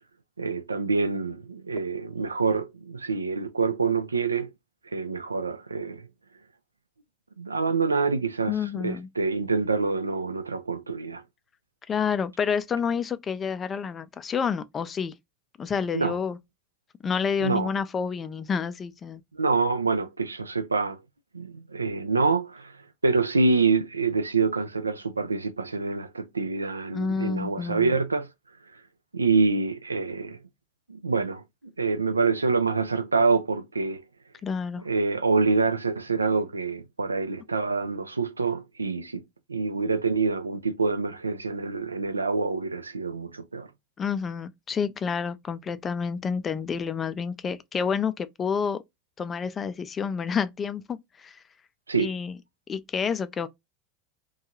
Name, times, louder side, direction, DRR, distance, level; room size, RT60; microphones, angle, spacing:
voice 1, 0.4-4.5 4.9-6.1 7.4-11.2 15.9-16.2 17.4-17.7 19.3-21.0 21.3-22.7 23.0-28.3 29.1-30.4 30.9-31.4 31.8-34.0 34.9-39.2 39.5-43.7 51.9-52.1, right 4 dB, 90° right, 0.3 m, -26 dB
voice 2, 8.5-9.1 11.9-15.2 15.6-16.4 17.0-19.2 26.9-28.0 34.4-34.8 44.0-48.8 49.2-51.4 52.0-52.4 52.7-53.5, left 6 dB, 30° left, 0.3 m, -29 dB
2.7 x 2.3 x 2.8 m
figure-of-eight pair, 80°, 0 cm